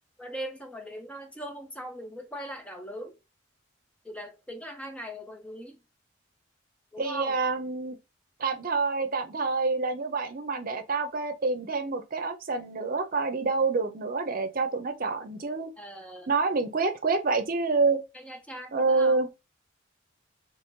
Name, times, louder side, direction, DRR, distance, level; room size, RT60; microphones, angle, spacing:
voice 1, 0.2-3.2 4.0-5.8 6.9-7.4 15.8-16.3 18.1-19.2, right 1 dB, 5° left, 0.4 m, -40 dB
voice 2, 7.0-8.0 8.4-15.7 16.3-18.0 18.7-19.3, right 4 dB, 45° right, 0.6 m, -27 dB
3.1 x 2.8 x 3.6 m
head